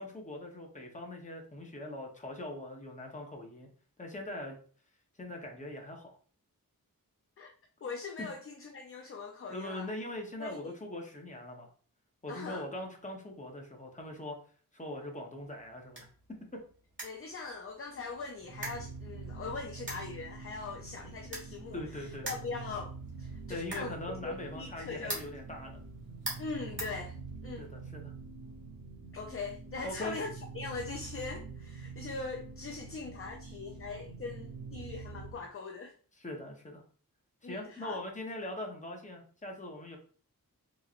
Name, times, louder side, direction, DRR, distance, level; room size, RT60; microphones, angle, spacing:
voice 1, 0.0-3.7 4.0-4.6 5.2-6.1 8.2-8.3 9.5-11.7 12.2-14.3 14.7-16.1 16.5-16.6 21.7-22.3 23.5-25.8 27.6-28.1 29.8-30.2 36.2-36.8 37.4-40.0, left 1 dB, 20° left, 1 dB, 0.9 m, -41 dB
voice 2, 7.8-9.9 10.4-10.7 12.3-12.7 17.0-24.0 24.2-25.3 26.4-27.2 27.4-27.7 29.1-35.9 37.4-38.0, left 4 dB, 40° left, 4 dB, 0.4 m, -41 dB
sound 1, 15.4-27.7, right 2 dB, 35° right, 1.3 m, -46 dB
sound 2, 18.4-35.4, right 4 dB, 50° right, 0.7 m, -46 dB
3.6 x 3.1 x 2.4 m, 0.43 s
wide cardioid pair, 100°, 35 cm